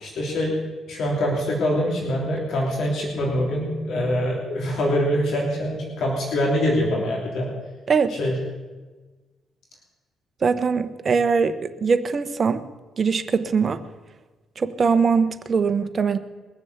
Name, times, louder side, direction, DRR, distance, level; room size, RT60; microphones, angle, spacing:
voice 1, 0.0-0.5 0.9-7.5 8.2-8.3, equal, 70° left, -1 dB, 3.2 m, -24 dB
voice 2, 10.4-12.6 13.0-13.8 14.6-16.2, right 5 dB, 40° right, 10 dB, 1.1 m, -21 dB
21.5 x 7.2 x 8.1 m, 1.3 s
cardioid pair, 90°, 0 cm